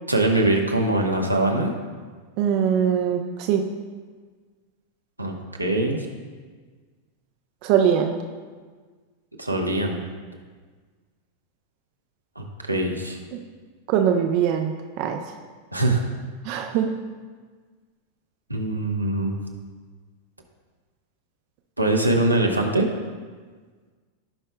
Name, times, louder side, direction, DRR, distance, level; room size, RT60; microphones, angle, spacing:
voice 1, 0.1-1.7 5.2-6.1 9.4-10.0 12.4-13.2 15.7-16.0 18.5-19.4 21.8-22.9, right 2 dB, 85° right, 1 dB, 1.0 m, -22 dB
voice 2, 2.4-3.7 7.6-8.2 13.9-15.2 16.4-17.0, right 8 dB, 45° right, 4 dB, 0.6 m, -22 dB
16.5 x 5.4 x 2.2 m, 1.5 s
figure-of-eight pair, 90°, 0 cm